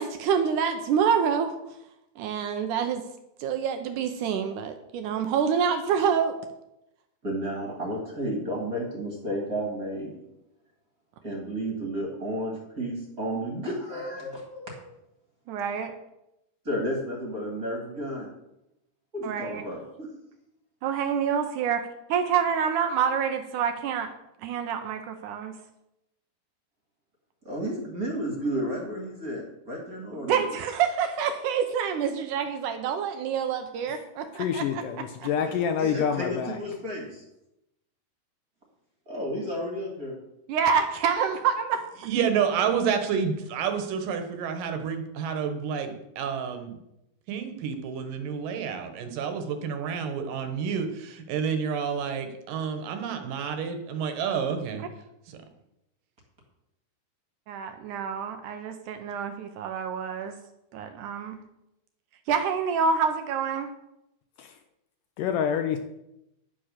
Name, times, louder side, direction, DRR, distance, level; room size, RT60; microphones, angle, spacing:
voice 1, 0.0-1.5 2.2-3.0 3.4-6.4 15.5-15.9 19.2-19.6 20.8-21.8 22.1-24.1 24.4-25.5 30.1-34.8 40.5-41.8 57.5-60.4 60.7-61.4 62.3-63.7, right 7 dB, 85° right, 7 dB, 1.7 m, -27 dB
voice 2, 7.2-10.2 11.2-14.9 16.6-18.3 19.1-20.1 27.4-30.4 35.3-37.2 39.1-40.2, equal, 30° right, -1 dB, 2.0 m, -32 dB
voice 3, 34.3-36.6 64.4-64.6 65.2-65.8, left 8 dB, 80° left, 7 dB, 1.9 m, -27 dB
voice 4, 42.0-46.8 47.3-54.8 55.3-55.4, right 7 dB, 65° right, 7 dB, 2.5 m, -29 dB
11.0 x 7.6 x 6.6 m, 0.86 s
omnidirectional pair, 4.8 m